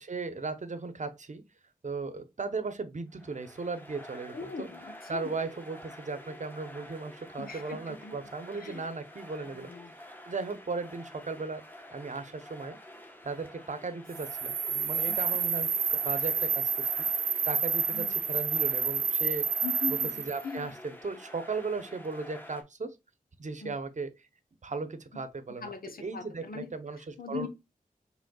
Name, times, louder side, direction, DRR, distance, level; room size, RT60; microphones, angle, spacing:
voice 1, 0.0-1.4 1.8-4.7 5.1-9.7 10.3-11.6 11.9-12.8 13.2-16.9 17.5-19.5 19.9-23.0 23.4-24.1 24.6-25.7 26.0-27.5, right 4 dB, 55° right, 0.8 m, -36 dB
sound 1, 3.1-22.6, left 1 dB, 15° left, 0.9 m, -49 dB
voice 2, 4.3-5.2 7.4-8.2 8.6-8.8 9.4-10.0 15.1-15.2 17.9-18.2 19.6-20.1 20.4-20.7 23.6-23.7 25.6-26.7 27.2-27.5, left 5 dB, 85° left, 0.9 m, -40 dB
sound 2, 14.1-20.4, right 6 dB, 85° right, 0.4 m, -29 dB
5.1 x 3.3 x 2.3 m
wide cardioid pair, 70°, 15 cm